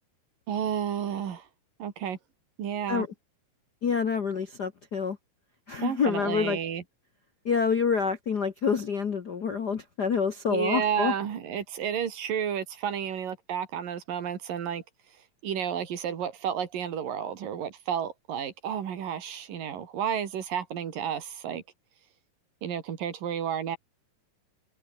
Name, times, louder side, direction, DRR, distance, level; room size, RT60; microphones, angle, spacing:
voice 1, 0.5-1.5 1.8-2.2 2.6-3.1 5.8-6.8 10.5-14.8 15.4-21.6 22.6-23.8, right 8 dB, 85° right, 4.2 m, -31 dB
voice 2, 3.8-5.2 5.7-6.6 7.4-11.1, left 6 dB, 55° left, 1.1 m, -27 dB
open air
omnidirectional pair, 3.8 m